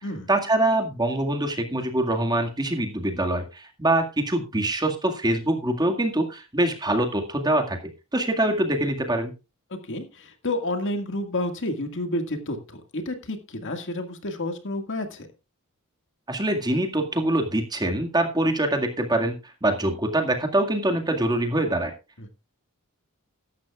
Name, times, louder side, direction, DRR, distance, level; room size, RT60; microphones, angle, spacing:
voice 1, 0.3-7.8 8.1-9.3 16.3-21.9, right 1 dB, 20° right, 4 dB, 2.0 m, -24 dB
voice 2, 9.8-15.3 22.2-22.3, left 1 dB, 60° left, 6 dB, 2.0 m, -30 dB
15.5 x 12.0 x 2.4 m, 0.28 s
head